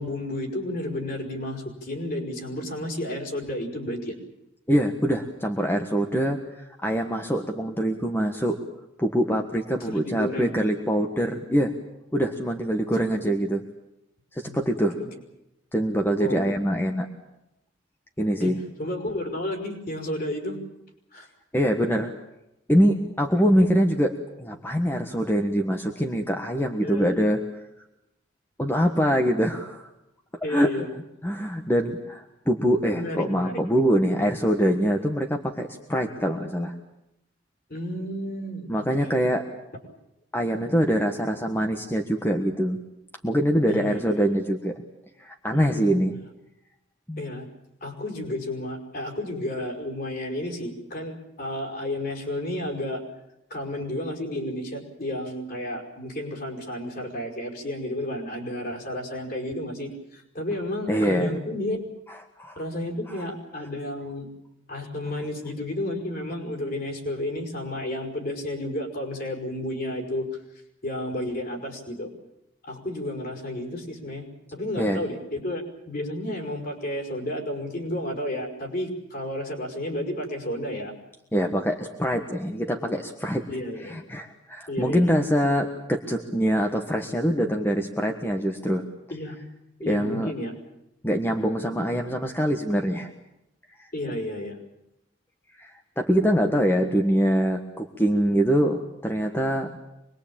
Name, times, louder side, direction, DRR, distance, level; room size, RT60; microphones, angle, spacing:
voice 1, 0.0-4.1 9.8-10.5 13.1-13.3 14.4-15.1 16.2-16.5 18.4-18.5 18.8-20.6 21.1-21.3 26.8-27.2 30.4-30.9 32.9-33.6 37.7-39.1 43.7-44.1 45.5-46.0 47.2-47.5 47.8-53.0 53.5-61.8 62.6-64.3 64.7-70.3 70.8-72.1 72.7-74.3 74.5-80.9 83.5-84.0 84.7-85.1 89.1-89.4 89.8-90.5 93.9-94.6, left 1 dB, 45° left, 2 dB, 5.6 m, -32 dB
voice 2, 4.7-8.6 9.0-11.7 12.1-13.6 14.3-15.0 15.7-17.1 18.2-18.6 21.5-22.1 22.7-27.4 28.6-29.9 30.5-30.7 31.2-36.7 38.7-39.4 40.3-42.8 43.2-44.8 45.2-46.2 47.1-47.2 60.9-61.4 62.4-62.6 74.8-75.0 81.3-83.4 83.8-88.8 89.9-90.3 91.0-93.1 95.6-99.7, equal, 10° left, 4 dB, 1.5 m, -24 dB
25.5 x 21.5 x 8.8 m, 0.86 s
head